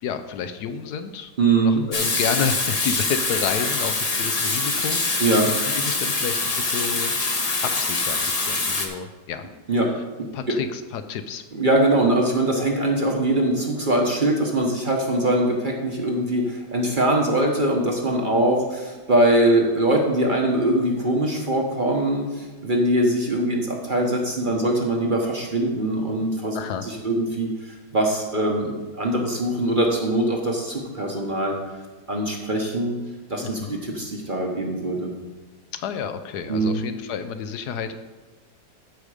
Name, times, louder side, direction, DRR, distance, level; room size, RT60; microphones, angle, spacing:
voice 1, 0.0-1.3 1.6-7.4 7.6-9.5 10.3-11.4 26.5-26.9 33.4-33.8 35.7-38.0, left 7 dB, 75° left, 9 dB, 1.1 m, -30 dB
voice 2, 1.4-1.8 5.2-5.5 9.7-9.9 11.5-27.5 27.9-31.6 32.1-32.9 33.3-35.1 36.5-36.8, right 1 dB, 35° right, 1 dB, 1.0 m, -22 dB
Water tap faucet / Sink (filling or washing), 1.9-8.9, left 3 dB, 30° left, 0.8 m, -24 dB
13.0 x 5.0 x 4.9 m, 1.3 s
omnidirectional pair, 1.8 m